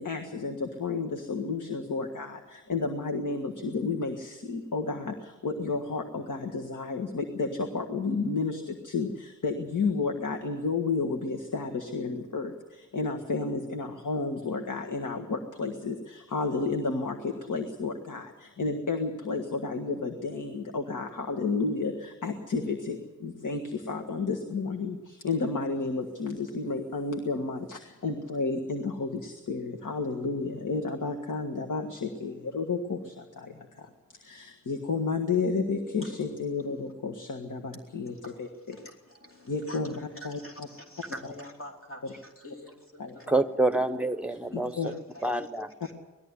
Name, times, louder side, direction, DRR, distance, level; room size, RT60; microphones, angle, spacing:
voice 1, 0.0-38.8 39.5-39.9 40.2-40.7 43.0-43.4 44.5-44.9, left 4 dB, 75° left, 3 dB, 1.6 m, -32 dB
voice 2, 40.1-42.0 42.4-42.7 43.2-43.3 44.8-45.3 45.8-45.9, left 1 dB, 45° left, 1 dB, 3.2 m, -45 dB
voice 3, 43.3-44.9 45.2-45.7, right 2 dB, 5° right, 10 dB, 0.9 m, -27 dB
19.5 x 13.5 x 9.7 m, 1.1 s
wide cardioid pair, 105°, 31 cm